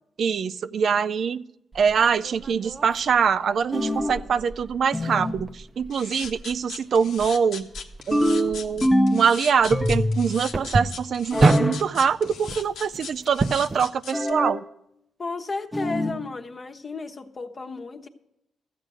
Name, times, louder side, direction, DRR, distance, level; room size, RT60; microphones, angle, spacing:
voice 1, 0.2-1.4 1.7-7.7 8.1-14.6, right 6 dB, 60° right, 12 dB, 0.4 m, -24 dB
sound 1, 1.7-13.8, right 3 dB, 30° right, 0.7 m, -30 dB
sound 2, 3.7-4.3 4.9-5.4 8.1-9.3 9.7-10.4 11.3-11.8 14.1-14.6 15.7-16.2, left 1 dB, 5° left, 1.1 m, -24 dB
sound 3, 5.9-14.3, left 6 dB, 80° left, 1.1 m, -38 dB
voice 2, 15.2-18.1, left 3 dB, 40° left, 4 dB, 1.1 m, -33 dB
14.0 x 7.8 x 6.2 m, 0.80 s
cardioid pair, 80°, 0 cm